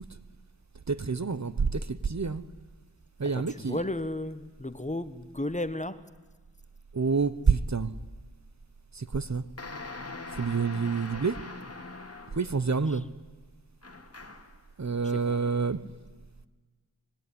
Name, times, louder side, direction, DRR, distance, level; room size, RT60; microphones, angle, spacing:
voice 1, 0.9-2.4 3.2-3.8 6.9-7.9 8.9-9.4 10.3-11.4 12.4-13.1 14.8-15.8, right 5 dB, 45° right, 15 dB, 1.0 m, -27 dB
voice 2, 3.3-6.0 12.9-13.0 15.0-15.4, left 1 dB, 20° left, 13 dB, 1.3 m, -34 dB
sound 1, 9.6-12.6 13.8-14.6, left 3 dB, 35° left, 2.3 m, -42 dB
25.0 x 21.0 x 9.9 m, 1.3 s
wide cardioid pair, 70°, 39 cm